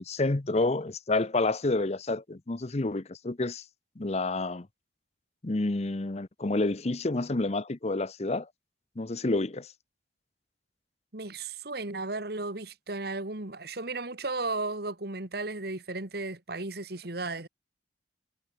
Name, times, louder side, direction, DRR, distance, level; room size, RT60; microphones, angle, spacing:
voice 1, 0.0-3.6 4.0-4.7 5.4-8.5 9.0-9.7, left 2 dB, 35° left, 0.8 m, -29 dB
voice 2, 11.1-17.5, right 3 dB, 60° right, 2.1 m, -35 dB
head